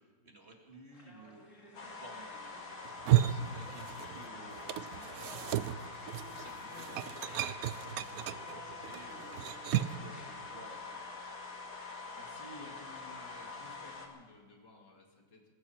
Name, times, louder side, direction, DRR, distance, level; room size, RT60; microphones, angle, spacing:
voice 1, 0.0-11.1, right 2 dB, 35° right, 1 dB, 2.2 m, -55 dB
sound 1, 0.9-7.9 8.4-10.3, left 1 dB, 45° left, 2.6 m, -56 dB
sound 2, 1.7-14.1, left 4 dB, 65° left, 2.5 m, -45 dB
sound 3, 2.8-4.3 4.5-10.1, right 13 dB, 70° right, 0.9 m, -33 dB
voice 2, 12.2-15.5, left 2 dB, 80° left, 1 dB, 3.0 m, -54 dB
20.0 x 16.0 x 4.3 m, 1.5 s
omnidirectional pair, 1.9 m